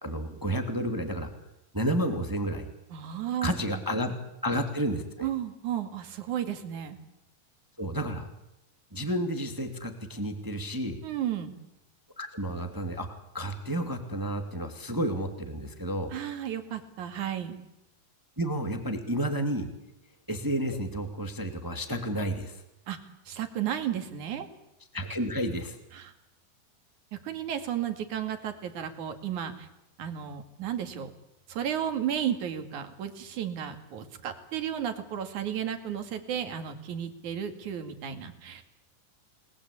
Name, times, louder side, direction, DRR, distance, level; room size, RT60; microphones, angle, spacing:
voice 1, 0.0-1.3 1.7-2.7 3.4-4.1 4.4-5.3 7.8-8.3 8.9-11.0 12.2-16.1 18.4-19.7 20.3-22.6 24.9-25.8, equal, 5° right, 6 dB, 1.9 m, -31 dB
voice 2, 2.9-3.5 5.2-7.0 11.0-11.5 16.1-17.6 22.9-23.0 23.3-24.5 25.9-26.1 27.1-29.7 30.0-31.1 31.5-38.6, right 9 dB, 60° right, 7 dB, 3.5 m, -33 dB
30.0 x 20.0 x 8.5 m, 0.89 s
omnidirectional pair, 4.0 m